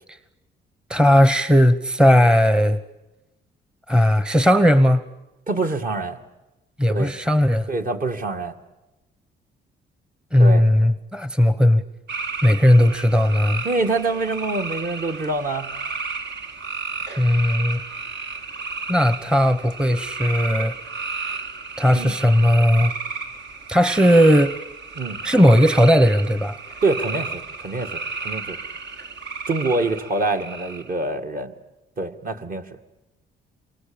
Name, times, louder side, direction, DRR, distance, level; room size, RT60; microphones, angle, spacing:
voice 1, 0.9-2.8 3.9-5.0 6.8-7.7 10.3-11.8 12.4-13.6 17.2-17.8 18.9-20.7 21.8-22.9 23.7-24.6 25.2-26.6, equal, 5° right, 14 dB, 1.0 m, -17 dB
voice 2, 5.5-6.2 6.9-7.1 7.7-8.5 10.4-10.7 13.6-15.7 21.9-22.1 25.0-25.2 26.8-28.6 29.5-31.5 32.0-32.6, right 2 dB, 45° right, 5 dB, 2.2 m, -25 dB
sound 1, 12.1-31.0, right 4 dB, 60° right, 2.4 m, -33 dB
27.5 x 23.5 x 8.9 m, 1.0 s
cardioid pair, 90°, 20 cm